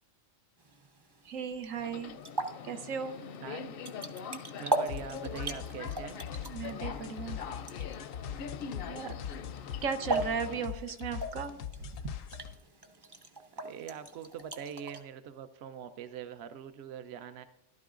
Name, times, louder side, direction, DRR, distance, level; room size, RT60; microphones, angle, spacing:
sound 1, 0.6-15.0, right 2 dB, 30° right, 0.5 m, -40 dB
voice 1, 1.2-2.1 2.6-3.2 6.5-7.4 8.9-9.2 9.8-11.6 12.0-12.1, right 6 dB, 90° right, 9 dB, 1.2 m, -36 dB
Subway metro underground, 1.8-10.7, left 6 dB, 60° left, 0.6 m, -43 dB
voice 2, 3.4-3.7 4.6-6.2 13.5-17.4, right 8 dB, 65° right, 10 dB, 0.8 m, -43 dB
sound 2, 4.9-12.5, left 8 dB, 85° left, 1.0 m, -42 dB
13.5 x 12.0 x 2.5 m, 0.92 s
omnidirectional pair, 1.3 m